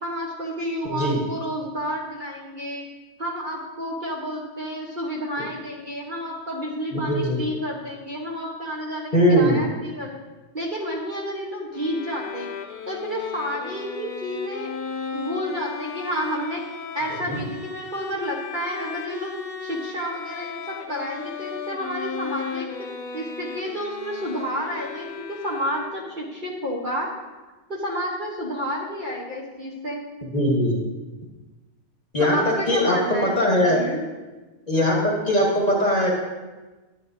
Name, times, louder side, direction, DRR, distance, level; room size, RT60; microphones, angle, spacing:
voice 1, 0.0-2.9 3.2-10.2 10.5-12.5 12.9-14.7 15.1-16.6 16.9-19.3 19.6-22.7 23.1-27.1 27.7-30.0 32.3-33.3 33.7-34.0, equal, 35° right, -3 dB, 1.2 m, -30 dB
voice 2, 0.9-1.2 6.9-7.4 9.1-9.6 17.2-17.4 30.3-30.8 32.1-33.8 34.7-36.1, equal, 30° left, -2 dB, 1.3 m, -20 dB
Bowed string instrument, 11.7-26.3, left 6 dB, 85° left, 1.2 m, -36 dB
10.0 x 9.5 x 2.7 m, 1.2 s
omnidirectional pair, 1.5 m